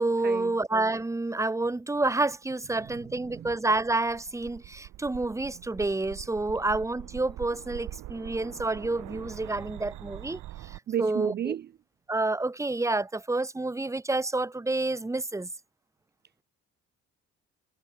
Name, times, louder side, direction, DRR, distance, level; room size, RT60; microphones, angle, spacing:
voice 1, 0.0-11.5 12.1-15.5, right 2 dB, 10° right, 0.9 m, -29 dB
sound 1, 2.4-10.8, right 15 dB, 85° right, 1.5 m, -44 dB
voice 2, 10.9-11.7, right 10 dB, 35° right, 0.4 m, -32 dB
cardioid pair, 90°, 30 cm